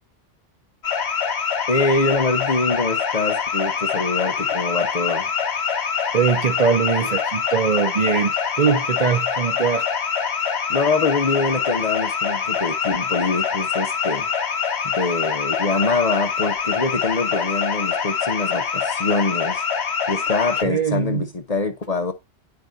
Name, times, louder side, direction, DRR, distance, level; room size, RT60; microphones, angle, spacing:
sound 1, 0.8-20.6, left 6 dB, 65° left, 1.2 m, -24 dB
voice 1, 1.7-5.3 10.7-14.3 14.8-19.6 20.1-22.1, left 3 dB, 40° left, 0.8 m, -24 dB
voice 2, 6.1-9.9 20.6-21.3, right 6 dB, 45° right, 0.6 m, -21 dB
10.5 x 4.7 x 2.6 m
omnidirectional pair, 1.2 m